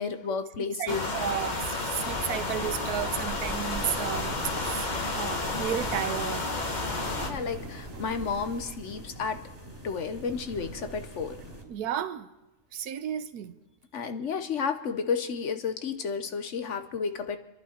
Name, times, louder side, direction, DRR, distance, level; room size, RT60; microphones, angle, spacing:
voice 1, 0.0-1.1 7.3-9.4 9.8-11.4 13.9-17.4, left 5 dB, 60° left, 9 dB, 1.1 m, -32 dB
voice 2, 0.6-4.3 4.6-6.5 11.6-12.3 12.7-13.5, right 9 dB, 85° right, 12 dB, 1.3 m, -33 dB
sound 1, 0.9-7.3, left 3 dB, 30° left, 1.2 m, -31 dB
sound 2, 1.2-8.8, right 4 dB, 50° right, 1.1 m, -45 dB
sound 3, 2.0-11.6, right 1 dB, 10° right, 2.5 m, -44 dB
27.0 x 11.0 x 4.3 m, 0.99 s
omnidirectional pair, 1.6 m